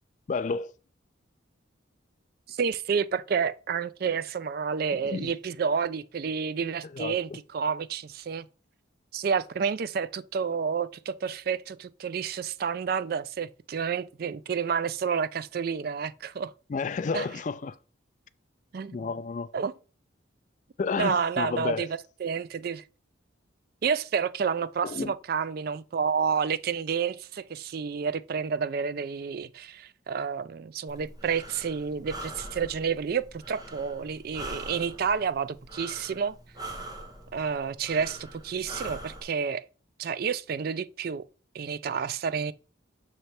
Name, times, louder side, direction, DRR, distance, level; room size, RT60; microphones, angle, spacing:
voice 1, 0.3-0.7 5.1-5.3 6.9-7.2 16.7-17.8 18.9-19.5 20.8-21.9 24.8-25.1, left 4 dB, 40° left, 0.3 m, -31 dB
voice 2, 2.5-8.5 9.1-16.5 17.1-17.3 18.7-19.1 19.5-19.7 21.0-21.9 22.2-22.8 23.8-36.4 37.3-39.6 40.0-41.2 41.5-42.5, right 6 dB, 50° right, 0.3 m, -30 dB
Breathing, 30.9-39.2, right 1 dB, 20° right, 1.0 m, -43 dB
6.8 x 3.3 x 4.2 m
head